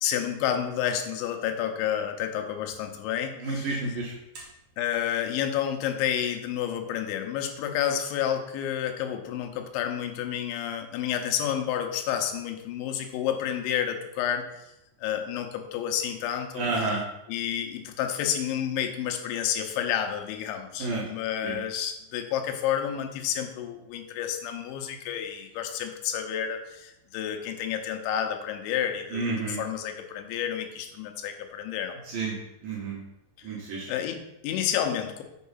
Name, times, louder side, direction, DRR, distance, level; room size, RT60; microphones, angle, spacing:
voice 1, 0.0-4.0 4.8-14.7 15.0-17.0 17.3-32.0 33.4-33.5 33.9-35.2, left 9 dB, 90° left, 5 dB, 3.2 m, -30 dB
voice 2, 3.4-4.4 16.6-17.0 20.8-21.1 21.4-21.6 29.1-29.6 32.1-32.4 32.6-33.0 33.4-33.9, right 3 dB, 70° right, -3 dB, 2.3 m, -30 dB
7.1 x 4.7 x 5.6 m, 0.87 s
omnidirectional pair, 5.2 m